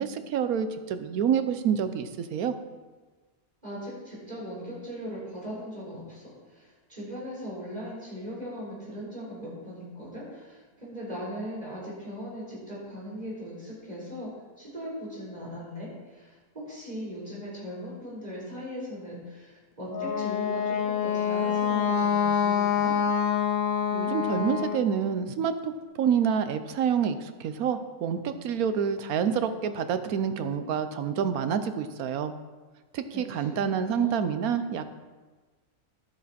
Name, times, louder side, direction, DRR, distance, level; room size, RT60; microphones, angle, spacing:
voice 1, 0.0-2.5 23.9-32.3 32.9-34.8, right 7 dB, 80° right, 10 dB, 1.2 m, -28 dB
voice 2, 3.6-14.3 14.6-22.9 33.1-34.3, equal, 25° right, -6 dB, 4.3 m, -39 dB
Wind instrument woodwind instrument, 19.9-24.9, left 7 dB, 50° left, 0.7 m, -26 dB
12.0 x 8.4 x 4.2 m, 1.3 s
omnidirectional pair, 1.5 m